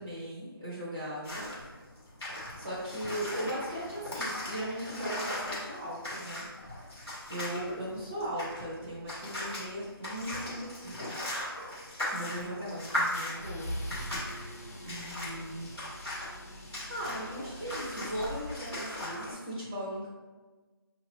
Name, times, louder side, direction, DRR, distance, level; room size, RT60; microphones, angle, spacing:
voice 1, 0.0-1.5 2.5-6.4 7.3-11.2 12.1-13.7 14.0-14.3 14.8-15.8 16.6-20.1, equal, 30° right, -10 dB, 1.1 m, -38 dB
sound 1, 1.2-19.3, left 1 dB, ahead, 0.4 m, -38 dB
sound 2, 13.1-19.1, equal, 40° left, 0.6 m, -43 dB
5.3 x 2.9 x 2.9 m, 1.3 s
figure-of-eight pair, 175°, 13 cm